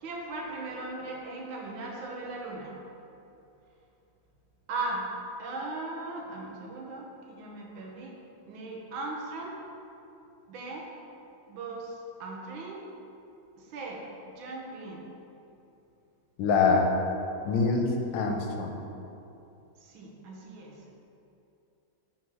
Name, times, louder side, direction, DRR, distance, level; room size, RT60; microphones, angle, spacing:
voice 1, 0.0-2.8 4.7-5.1 5.4-8.1 8.5-9.6 10.5-10.9 11.5-12.8 13.6-14.0 14.4-15.1 19.8-20.8, right 2 dB, 80° right, -1 dB, 1.7 m, -38 dB
voice 2, 16.4-16.9 17.4-18.7, left 4 dB, 75° left, 3 dB, 1.4 m, -24 dB
6.2 x 4.4 x 4.7 m, 2.8 s
omnidirectional pair, 2.2 m